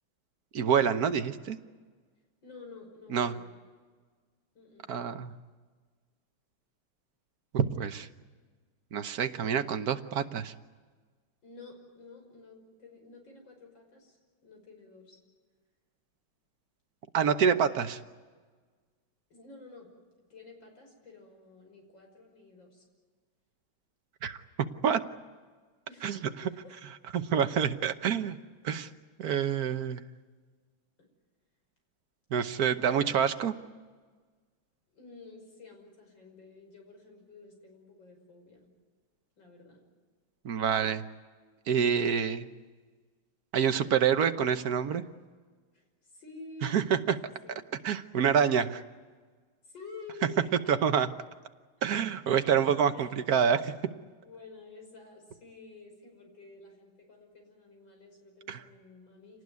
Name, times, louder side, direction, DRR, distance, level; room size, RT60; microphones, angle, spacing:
voice 1, 0.5-1.6 3.1-3.3 4.9-5.3 7.5-8.1 8.9-10.5 17.1-18.0 24.2-24.4 24.8-25.0 26.0-26.2 27.1-28.4 28.6-28.9 29.2-30.1 32.3-33.5 40.4-41.0 41.7-42.5 43.5-45.0 46.6-47.1 47.8-48.8 50.7-51.1 51.8-53.7 58.5-58.6, right 7 dB, 55° right, 9 dB, 1.3 m, -27 dB
voice 2, 2.4-3.5 4.5-4.9 11.4-15.2 19.3-19.9 20.3-22.8 25.9-26.8 34.9-38.7 39.4-39.8 45.7-46.8 47.2-47.6 49.6-51.2 52.9-53.2 54.2-59.4, left 3 dB, 65° left, 2 dB, 6.4 m, -50 dB
27.0 x 19.0 x 9.5 m, 1.5 s
omnidirectional pair, 2.2 m